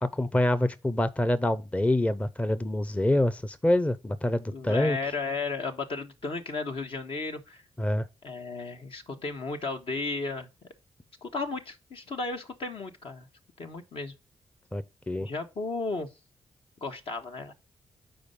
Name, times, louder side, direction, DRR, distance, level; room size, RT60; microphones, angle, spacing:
voice 1, 0.0-5.0 7.8-8.1 14.7-15.3, left 1 dB, 15° left, 0.6 m, -26 dB
voice 2, 4.5-7.6 8.2-10.5 11.2-13.3 13.6-14.1 15.2-16.1 16.8-17.5, left 3 dB, 60° left, 1.2 m, -34 dB
5.1 x 4.5 x 5.2 m
supercardioid pair, 45°, 10 cm